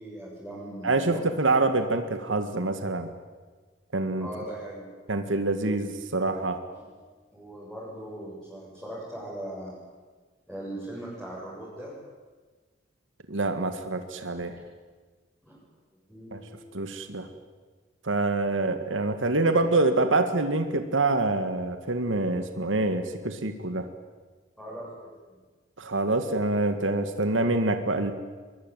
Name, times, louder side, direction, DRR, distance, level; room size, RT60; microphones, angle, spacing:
voice 1, 0.0-1.3 4.2-4.9 6.7-6.9 7.3-9.8 10.5-11.9 14.5-14.6 15.4-15.6 16.1-16.8 24.6-25.1, right 1 dB, ahead, -8 dB, 7.8 m, -39 dB
voice 2, 0.8-3.1 3.9-4.3 5.1-6.6 13.3-14.5 16.3-16.4 16.7-17.3 18.0-23.9 25.8-28.1, right 2 dB, 85° right, 8 dB, 2.0 m, -26 dB
23.5 x 22.0 x 9.2 m, 1.4 s
head